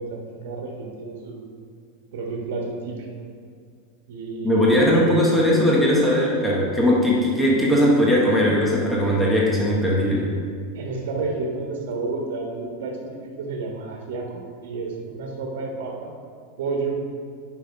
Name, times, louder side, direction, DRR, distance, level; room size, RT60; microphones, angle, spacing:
voice 1, 0.0-1.4 2.1-2.9 4.1-5.3 10.7-13.0 13.4-16.1 16.6-17.0, right 3 dB, 65° right, -1 dB, 1.4 m, -30 dB
voice 2, 4.4-10.3, equal, 5° left, -5 dB, 1.0 m, -19 dB
10.5 x 5.6 x 5.3 m, 2.2 s
supercardioid pair, 175°, 0 cm